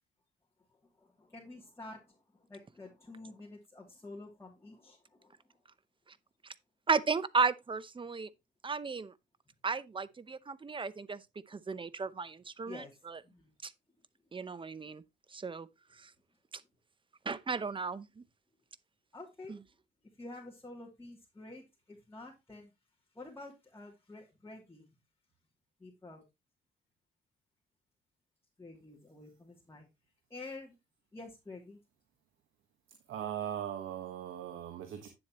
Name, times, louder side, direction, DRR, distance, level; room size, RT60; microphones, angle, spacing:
voice 1, 1.0-5.6 12.6-12.9 13.2-13.5 14.7-14.9 19.1-19.6 20.2-22.7 23.1-24.9 25.8-26.2 28.6-29.9 30.3-30.8 31.1-31.8, left 2 dB, 10° left, 2.7 m, -49 dB
voice 2, 6.9-8.3 8.6-9.1 9.6-11.2 11.5-13.2 13.6-13.7 14.3-15.0 15.3-15.7 17.3-18.1, right 4 dB, 25° right, 0.8 m, -34 dB
voice 3, 32.9-35.1, right 10 dB, 80° right, 1.4 m, -39 dB
9.7 x 7.4 x 3.0 m
cardioid pair, 90°, 20 cm